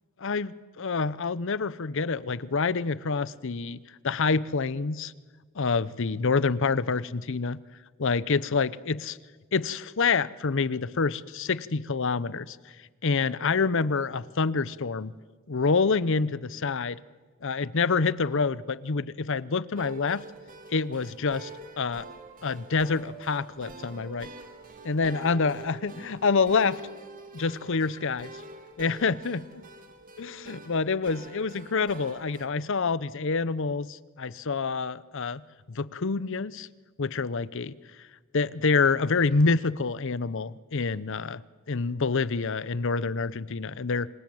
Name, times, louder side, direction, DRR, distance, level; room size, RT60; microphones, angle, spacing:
voice 1, 0.2-5.1 5.6-7.6 8.0-9.2 9.5-12.6 13.0-15.1 15.5-17.0 17.4-20.2 20.7-21.5 21.8-22.0 22.4-24.3 24.8-26.8 27.3-28.3 28.8-29.4 30.2-35.4 35.7-36.7 37.0-37.8 38.3-41.4 41.7-44.1, left 4 dB, 65° left, 18 dB, 0.7 m, -27 dB
sound 1, 19.8-32.5, right 2 dB, 40° right, 2.1 m, -46 dB
27.5 x 25.5 x 7.8 m, 1.5 s
head